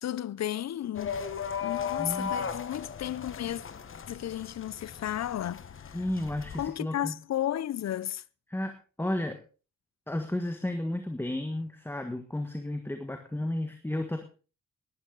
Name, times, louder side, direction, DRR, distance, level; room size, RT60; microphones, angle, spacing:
voice 1, 0.0-1.2 1.6-3.6 4.1-6.0 6.5-8.2, left 11 dB, 60° left, 0.6 m, -33 dB
sound 1, 0.9-6.7, left 7 dB, 45° left, 1.2 m, -37 dB
voice 2, 2.0-2.6 5.9-7.1 8.5-9.4 10.1-14.2, left 1 dB, 5° left, 1.5 m, -33 dB
18.5 x 12.5 x 3.9 m
wide cardioid pair, 155°, 30 cm